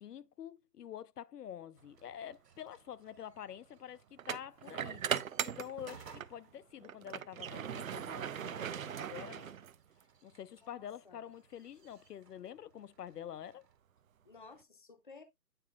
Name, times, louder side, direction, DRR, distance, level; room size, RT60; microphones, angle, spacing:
voice 1, 0.0-9.5 10.2-13.6, left 10 dB, 75° left, 0.6 m, -47 dB
sound 1, 1.8-13.8, right 5 dB, 85° right, 1.5 m, -63 dB
sound 2, 2.1-2.3 4.2-6.4 6.8-10.0, right 8 dB, 60° right, 0.5 m, -39 dB
voice 2, 6.5-7.5 10.6-11.3 14.2-15.2, left 4 dB, 30° left, 0.6 m, -57 dB
8.9 x 4.8 x 2.3 m
hypercardioid pair, 165°, 48 cm